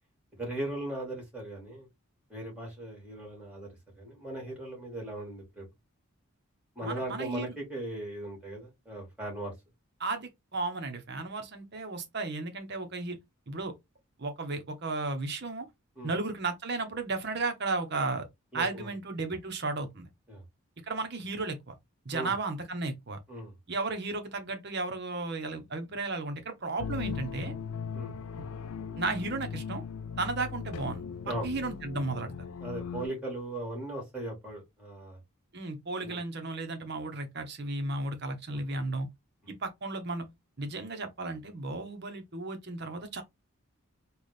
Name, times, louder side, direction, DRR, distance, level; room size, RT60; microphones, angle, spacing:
voice 1, 0.4-1.9 2.3-3.7 4.0-5.6 6.8-9.5 16.0-16.1 18.5-18.9 20.3-20.4 22.1-22.3 23.3-23.5 27.9-28.1 31.2-31.5 32.6-35.2 36.0-36.2 38.5-38.8, right 1 dB, 5° right, 2.1 m, -38 dB
voice 2, 6.8-7.5 10.0-13.2 13.5-13.7 14.2-15.7 16.0-18.2 18.5-20.1 20.9-21.8 22.0-23.2 23.7-27.5 29.0-29.8 30.2-31.0 31.4-32.3 35.5-39.1 39.5-40.2 40.6-43.2, right 3 dB, 50° right, 0.9 m, -34 dB
sound 1, 26.8-33.1, left 6 dB, 75° left, 0.3 m, -38 dB
4.1 x 2.4 x 3.2 m
head